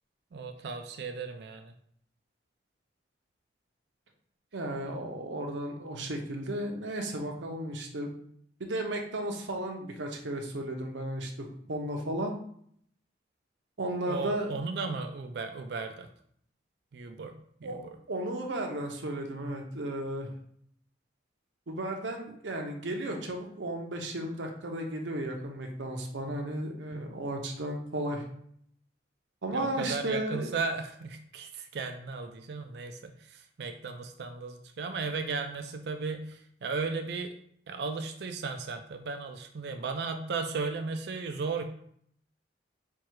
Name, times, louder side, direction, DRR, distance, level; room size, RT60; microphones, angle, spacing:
voice 1, 0.3-1.7 5.9-6.1 14.1-16.1 16.9-17.3 17.6-18.0 26.9-27.1 29.5-37.3 37.7-41.6, right 4 dB, 65° right, 6 dB, 0.4 m, -35 dB
voice 2, 4.5-8.1 8.6-11.3 11.7-12.3 13.8-14.5 17.6-20.3 21.7-28.2 29.4-30.6, right 1 dB, 80° right, 3 dB, 0.8 m, -34 dB
4.6 x 2.4 x 4.5 m, 0.65 s
head